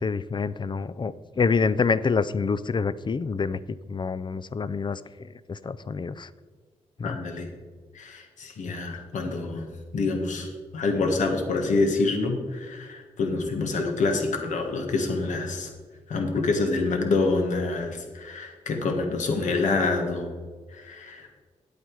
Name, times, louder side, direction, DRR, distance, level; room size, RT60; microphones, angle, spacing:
voice 1, 0.0-3.6 3.9-6.3 7.0-7.2, left 5 dB, 40° left, 16 dB, 0.5 m, -27 dB
voice 2, 7.0-7.5 7.9-9.7 9.9-15.7 16.1-20.4 20.7-21.3, left 3 dB, 80° left, 3 dB, 1.5 m, -27 dB
9.1 x 8.3 x 4.8 m, 1.5 s
cardioid pair, 55°, 12 cm